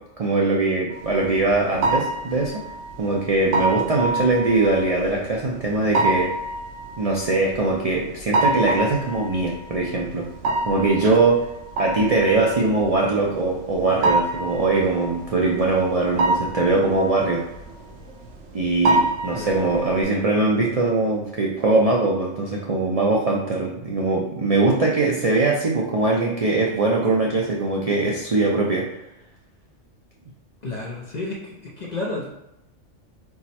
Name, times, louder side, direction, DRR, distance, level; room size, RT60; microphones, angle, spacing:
voice 1, 0.2-2.5 3.0-6.3 7.0-10.3 10.7-11.4 11.8-17.4 18.5-28.9, right 3 dB, 55° right, -2 dB, 0.4 m, -21 dB
sound 1, 0.9-20.0, right 2 dB, 85° right, 1.1 m, -27 dB
voice 2, 19.3-19.7 30.6-32.3, left 2 dB, 45° left, -3 dB, 0.6 m, -31 dB
4.6 x 2.1 x 4.1 m, 0.89 s
omnidirectional pair, 1.3 m